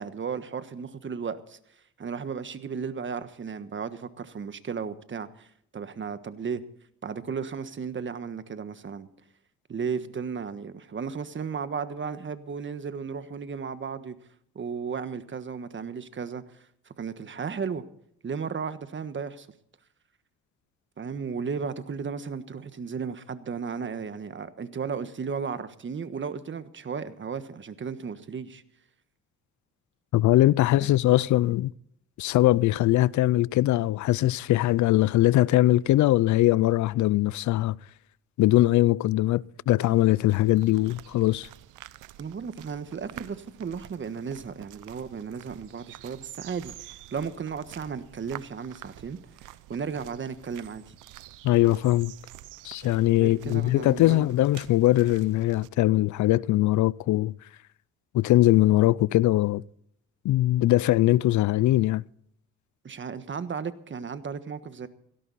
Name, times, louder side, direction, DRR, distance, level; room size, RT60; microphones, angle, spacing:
voice 1, 0.0-6.6 7.0-9.1 9.7-14.2 14.5-17.8 18.2-19.5 21.0-28.6 30.8-30.9 42.2-51.0 53.1-54.3 62.8-64.9, right 6 dB, 40° right, 1.4 m, -35 dB
voice 2, 30.1-31.7 32.2-37.8 38.4-41.5 51.4-52.1 52.6-57.3 58.1-59.6 60.2-62.0, left 16 dB, 70° left, 0.5 m, -21 dB
sound 1, 39.8-55.7, right 14 dB, 90° right, 0.8 m, -48 dB
17.0 x 17.0 x 4.2 m
cardioid pair, 90°, 30 cm